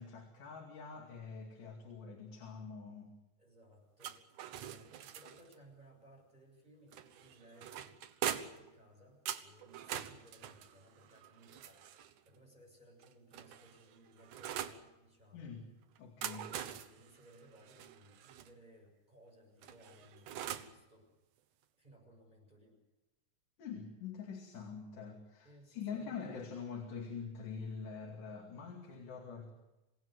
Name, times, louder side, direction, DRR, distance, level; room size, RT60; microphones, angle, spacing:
voice 1, 0.0-3.1 15.3-15.6 16.0-16.5 23.6-29.5, left 6 dB, 85° left, 1 dB, 4.1 m, -45 dB
voice 2, 3.4-4.2 4.5-7.9 8.2-15.6 16.3-21.1 21.8-22.8 25.4-26.4, right 1 dB, 15° right, 1 dB, 7.0 m, -61 dB
sound 1, 4.0-5.6 6.9-8.7 9.3-12.2 13.0-14.8 16.0-18.5 19.6-20.8, right 10 dB, 85° right, 2.6 m, -43 dB
27.5 x 17.5 x 8.1 m, 1.0 s
omnidirectional pair, 3.5 m